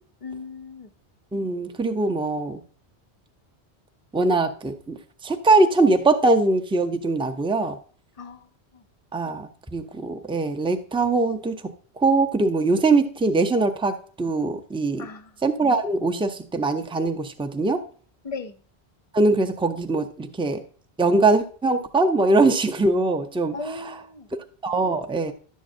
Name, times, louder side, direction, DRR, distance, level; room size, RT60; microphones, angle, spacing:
voice 1, 0.2-0.9 8.2-8.4 8.7-8.8 15.0-15.3 18.2-18.6 23.5-24.3, left 3 dB, 45° left, 0.5 m, -36 dB
voice 2, 1.3-2.6 4.1-5.0 5.2-7.8 9.1-15.1 15.4-17.8 19.1-20.6 21.0-23.9 24.6-25.3, right 3 dB, 10° right, 0.4 m, -22 dB
11.5 x 7.3 x 2.6 m
omnidirectional pair, 1.1 m